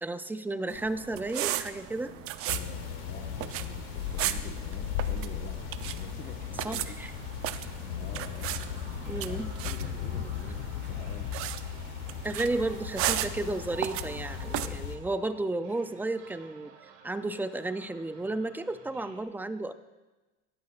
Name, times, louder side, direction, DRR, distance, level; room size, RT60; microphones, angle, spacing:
voice 1, 0.0-2.1 6.6-7.1 9.1-9.5 12.2-16.7 17.0-19.7, right 2 dB, 5° right, 11 dB, 0.3 m, -33 dB
sound 1, 0.7-14.7, right 13 dB, 45° right, 0.6 m, -37 dB
sound 2, 1.3-2.7 6.6-19.2, right 7 dB, 65° right, 2.1 m, -53 dB
voice 2, 2.0-7.0 7.9-8.9 9.2-11.4, left 5 dB, 30° left, 1 dB, 1.2 m, -47 dB
sound 3, 2.5-15.0, left 9 dB, 85° left, 1.2 m, -37 dB
19.0 x 14.5 x 2.4 m, 1.2 s
supercardioid pair, 135°, 31 cm